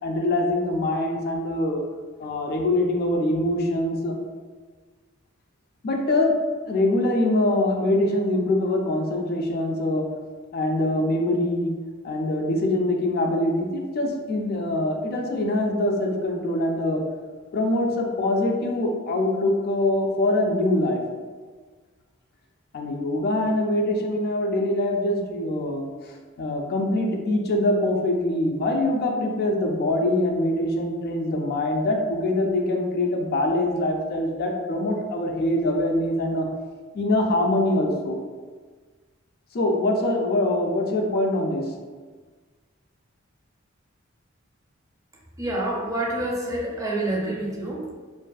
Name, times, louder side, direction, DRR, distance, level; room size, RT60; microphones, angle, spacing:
voice 1, 0.0-1.8 2.2-4.2 5.8-6.3 6.7-10.1 10.5-11.7 12.0-17.0 17.5-21.0 22.7-36.5 36.9-38.2 39.5-41.6, left 1 dB, 50° left, 2 dB, 0.3 m, -24 dB
voice 2, 45.4-47.9, right 1 dB, 15° right, -3 dB, 0.4 m, -27 dB
2.4 x 2.3 x 2.3 m, 1.4 s
head